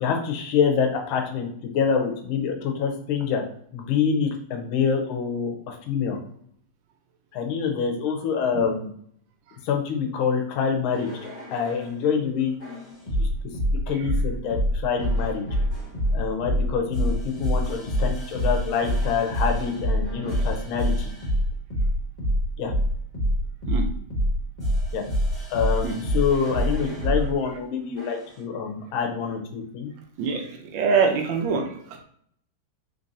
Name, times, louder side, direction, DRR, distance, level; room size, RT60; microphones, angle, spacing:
voice 1, 0.0-3.4 3.7-6.2 7.3-8.9 9.6-11.1 11.5-13.3 13.9-15.4 16.1-21.1 22.6-22.7 24.9-25.0 25.5-29.9, left 6 dB, 75° left, 3 dB, 1.4 m, -26 dB
sound 1, 10.9-11.9 12.6-27.3 28.0-28.3, equal, 30° left, 0.8 m, -26 dB
voice 2, 30.7-31.7, right 5 dB, 70° right, 3 dB, 1.2 m, -23 dB
3.9 x 3.2 x 2.6 m, 0.63 s
omnidirectional pair, 2.4 m